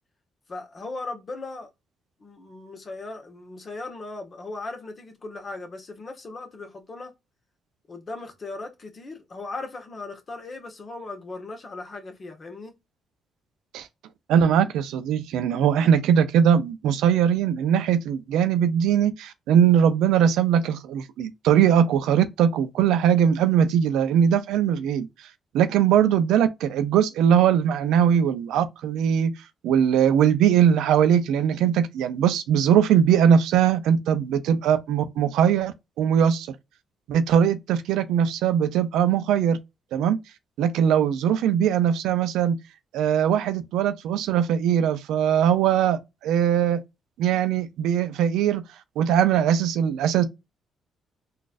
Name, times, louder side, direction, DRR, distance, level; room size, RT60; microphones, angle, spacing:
voice 1, 0.5-1.7 2.2-7.1 7.9-12.7, left 3 dB, 40° left, 1.1 m, -38 dB
voice 2, 14.3-25.1 25.5-29.3 29.6-36.5 37.1-39.6 39.9-40.2 40.6-42.6 42.9-46.8 47.2-48.6 49.0-50.2, right 8 dB, 90° right, 0.5 m, -21 dB
4.0 x 2.4 x 2.5 m
cardioid pair, 90°, 0 cm